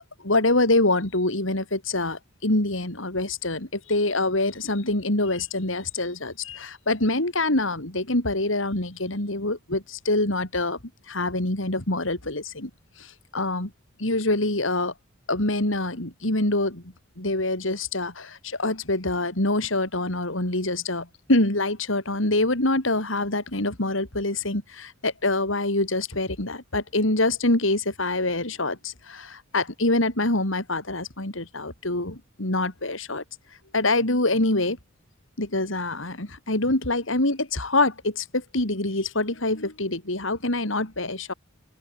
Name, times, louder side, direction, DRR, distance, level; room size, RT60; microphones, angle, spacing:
voice 1, 0.0-10.8 11.0-12.7 13.0-13.7 14.0-14.9 15.3-16.8 17.2-33.2 33.7-34.8 35.4-41.3, left 2 dB, 70° left, 4.4 m, -25 dB
head